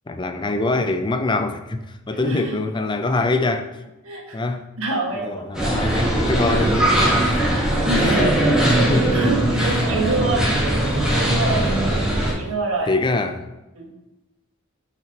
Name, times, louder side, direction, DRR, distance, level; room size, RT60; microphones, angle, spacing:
voice 1, 0.1-3.7 4.3-4.6 5.2-7.5 8.0-8.1 8.9-9.1 9.6-9.8 12.9-13.5, left 2 dB, 20° left, 8 dB, 0.5 m, -24 dB
voice 2, 2.2-2.6 4.0-4.4 4.8-5.9 6.5-6.6 6.9-7.1 7.9-10.5 10.9-11.8 12.2-12.9 13.7-13.9, right 2 dB, 75° right, 0 dB, 1.7 m, -27 dB
sound 1, 5.5-12.3, right 1 dB, 5° right, 1.8 m, -19 dB
9.0 x 5.9 x 2.9 m, 0.99 s
head